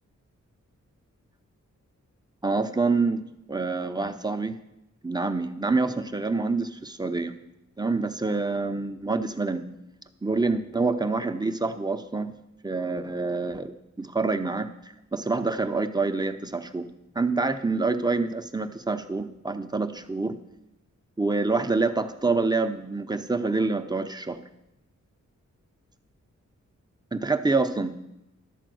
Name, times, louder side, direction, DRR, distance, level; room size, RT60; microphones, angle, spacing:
voice 1, 2.4-3.2 3.5-4.6 5.0-7.3 7.8-9.6 10.2-12.3 12.6-14.7 15.1-16.8 17.1-20.4 21.2-24.4 27.1-28.0, right 3 dB, 15° right, 8 dB, 0.6 m, -26 dB
12.0 x 4.4 x 7.7 m, 0.88 s
wide cardioid pair, 90°, 30 cm